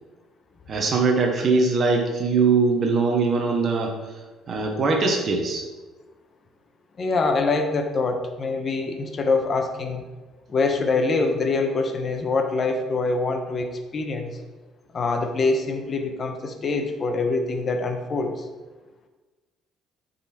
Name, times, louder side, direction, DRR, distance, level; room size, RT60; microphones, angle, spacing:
voice 1, 0.7-4.0 4.5-5.6, right 4 dB, 40° right, 2 dB, 1.0 m, -21 dB
voice 2, 7.0-10.0 10.5-13.7 13.9-14.3 14.9-18.4, left 3 dB, 35° left, 5 dB, 1.0 m, -24 dB
9.2 x 4.1 x 4.3 m, 1.2 s
cardioid pair, 120°, 0 cm